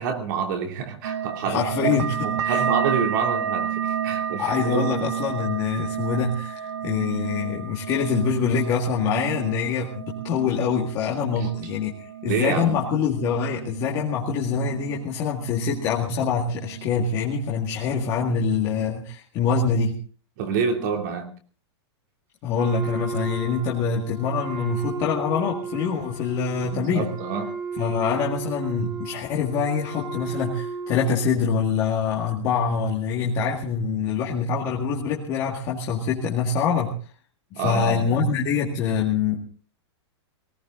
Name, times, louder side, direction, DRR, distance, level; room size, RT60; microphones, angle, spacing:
voice 1, 0.0-4.8 11.3-11.5 12.2-12.8 20.4-21.3 26.6-27.5 37.5-38.2, right 6 dB, 40° right, 3 dB, 2.9 m, -27 dB
sound 1, 1.0-16.2 16.5-17.3 17.6-18.3 18.7-19.1, right 8 dB, 80° right, 1.7 m, -31 dB
voice 2, 1.4-2.2 2.4-2.6 4.4-20.0 22.4-27.1 27.8-36.9 37.5-39.4, left 6 dB, 25° left, -3 dB, 2.0 m, -25 dB
Wind instrument woodwind instrument, 22.5-31.4, right 4 dB, 20° right, 3.8 m, -34 dB
19.0 x 17.0 x 3.9 m, 0.40 s
supercardioid pair, 175°, 14 cm